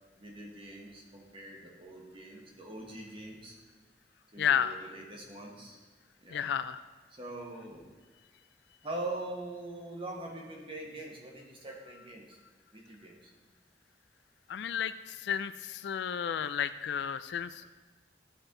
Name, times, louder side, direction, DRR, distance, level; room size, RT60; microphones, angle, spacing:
voice 1, 0.1-3.6 4.3-5.8 6.2-6.5 7.1-7.8 8.8-12.4 12.7-13.3, right 2 dB, 30° right, 0 dB, 1.3 m, -43 dB
voice 2, 4.4-4.7 6.3-6.8 14.5-17.8, left 8 dB, 65° left, 13 dB, 0.3 m, -32 dB
13.0 x 4.4 x 3.8 m, 1.4 s
head